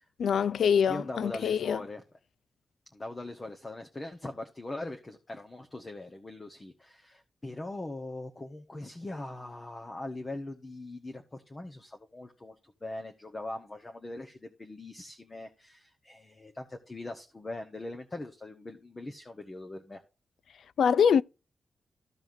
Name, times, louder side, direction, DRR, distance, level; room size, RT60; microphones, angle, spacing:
voice 1, 0.2-1.8 20.8-21.2, left 7 dB, 90° left, 0.3 m, -24 dB
voice 2, 0.9-2.0 2.9-12.5 12.8-20.0, left 2 dB, 20° left, 1.0 m, -41 dB
14.0 x 5.6 x 2.6 m
wide cardioid pair, 165°, 0 cm